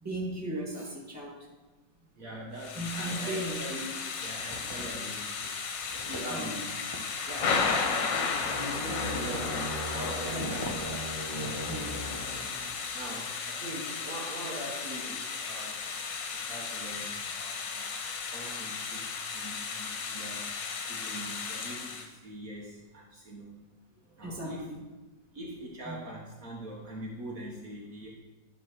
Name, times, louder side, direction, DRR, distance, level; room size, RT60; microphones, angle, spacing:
voice 1, 0.0-1.5 2.8-3.7 6.3-6.6 11.7-11.9 24.2-24.8 25.8-26.0, right 1 dB, 10° right, -5 dB, 1.8 m, -36 dB
voice 2, 2.2-5.6 5.9-6.8 7.2-7.7 8.1-11.9 12.9-15.8 16.3-18.0 18.2-20.5 20.9-23.6 24.0-24.7 25.3-28.1, right 1 dB, 50° right, -3 dB, 1.6 m, -42 dB
Thunder / Rain, 2.6-22.1, left 5 dB, 80° left, 1.6 m, -34 dB
sound 1, 4.2-5.1 5.4-5.5 5.7-11.8, equal, 25° left, 0.6 m, -43 dB
sound 2, 8.2-13.0, equal, 45° left, 2.1 m, -39 dB
11.5 x 3.9 x 6.1 m, 1.2 s
omnidirectional pair, 1.9 m